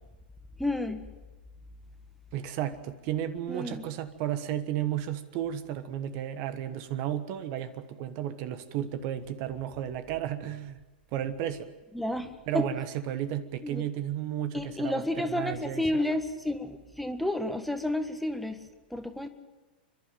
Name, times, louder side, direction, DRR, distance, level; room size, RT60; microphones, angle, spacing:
voice 1, 0.6-1.0 3.5-3.8 11.9-12.6 13.6-13.8 14.5-18.6 18.9-19.3, left 1 dB, ahead, 1.6 m, -31 dB
voice 2, 2.3-10.8 11.1-11.7 12.5-15.8, right 11 dB, 45° right, 1.3 m, -33 dB
28.5 x 11.5 x 9.2 m
hypercardioid pair, 110°, 5 cm